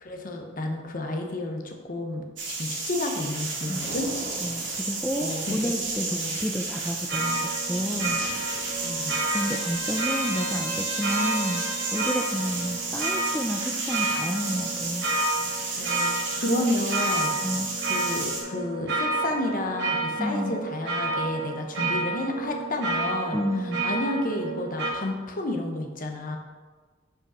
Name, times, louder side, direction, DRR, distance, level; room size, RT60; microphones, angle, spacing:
voice 1, 0.0-2.2 2.6-4.1 5.2-5.7 6.1-6.3 8.8-9.2 15.8-23.4 23.8-26.4, left 1 dB, 50° left, 3 dB, 0.9 m, -31 dB
sound 1, 2.4-18.4, right 3 dB, 80° right, 1.8 m, -32 dB
voice 2, 4.4-8.2 9.3-11.6 11.9-15.1 17.4-17.7 20.2-20.5 23.3-23.8, equal, 5° left, 2 dB, 0.3 m, -30 dB
sound 2, 7.1-24.9, right 2 dB, 65° right, 1.5 m, -30 dB
Trumpet, 7.9-12.3, right 2 dB, 45° right, 1.7 m, -38 dB
5.3 x 5.0 x 5.5 m, 1.4 s
head